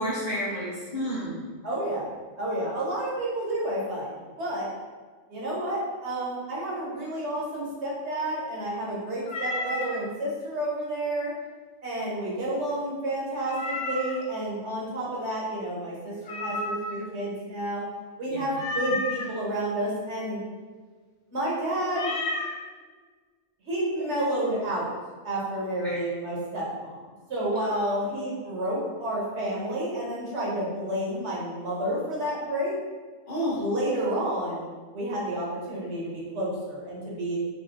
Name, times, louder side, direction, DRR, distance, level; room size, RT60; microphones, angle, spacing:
voice 1, 0.0-1.4 18.3-18.5 25.8-26.0 27.7-27.8 33.3-33.6, equal, 35° left, -9 dB, 1.1 m, -30 dB
voice 2, 1.6-4.7 5.3-11.3 11.8-17.8 18.2-20.4 21.3-22.2 23.6-24.9 25.2-32.7 33.6-37.3, right 1 dB, 60° right, -5 dB, 1.1 m, -30 dB
Meow, 9.3-10.0 13.5-14.2 16.3-17.1 18.5-19.3 21.9-22.5, left 2 dB, 85° left, 0.3 m, -31 dB
4.2 x 2.9 x 2.8 m, 1.5 s
omnidirectional pair, 1.4 m